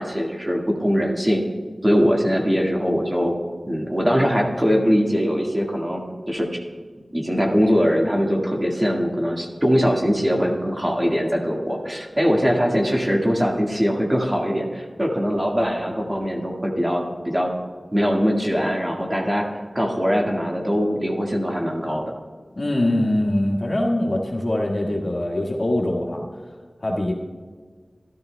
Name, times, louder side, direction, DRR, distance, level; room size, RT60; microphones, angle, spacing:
voice 1, 0.0-1.4 1.8-3.3 3.6-6.0 6.3-6.6 7.1-17.5 17.9-22.1, equal, 25° right, 0 dB, 1.7 m, -22 dB
voice 2, 22.5-26.2 26.8-27.1, left 1 dB, 60° left, 0 dB, 1.6 m, -23 dB
14.0 x 12.0 x 2.2 m, 1.5 s
wide cardioid pair, 45°, 0 cm